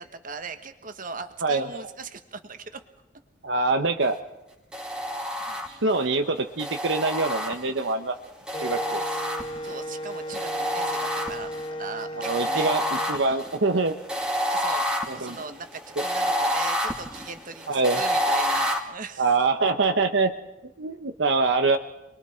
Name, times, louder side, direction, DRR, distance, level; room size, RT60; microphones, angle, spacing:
voice 1, 0.0-2.8 9.0-9.3 9.6-12.7 14.4-14.9 15.1-19.3, right 4 dB, 45° right, 8 dB, 1.4 m, -39 dB
voice 2, 1.4-1.8 3.4-4.2 5.7-8.1 8.6-9.0 12.2-12.8 13.1-13.9 15.1-15.5 17.7-18.1 19.2-20.3 20.8-21.8, right 3 dB, 70° right, 6 dB, 0.9 m, -24 dB
sound 1, 4.7-6.0 6.6-7.9 8.5-9.8 10.3-11.7 12.2-18.8, equal, 5° right, 2.0 m, -28 dB
Wind instrument woodwind instrument, 8.5-13.2, equal, 30° left, 1.4 m, -35 dB
29.0 x 22.0 x 4.4 m, 0.98 s
head